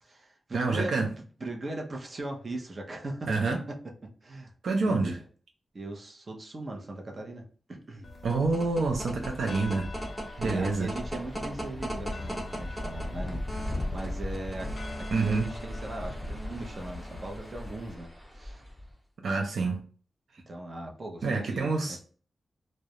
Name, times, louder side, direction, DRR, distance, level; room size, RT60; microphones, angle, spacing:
voice 1, 0.0-3.6 4.0-4.5 4.8-5.1 5.7-7.4 7.7-8.1 10.4-18.6 20.5-22.0, right 2 dB, 45° right, 1 dB, 0.7 m, -39 dB
voice 2, 0.5-1.1 3.3-3.6 4.6-5.2 8.2-9.9 10.4-10.9 15.1-15.5 19.2-19.8 21.2-22.0, right 3 dB, 80° right, 2 dB, 0.4 m, -27 dB
sound 1, 8.0-18.0, left 2 dB, 55° left, 0.5 m, -42 dB
sound 2, 8.1-18.9, equal, 15° right, 1.0 m, -37 dB
2.3 x 2.1 x 2.8 m, 0.41 s
cardioid pair, 65°, 0 cm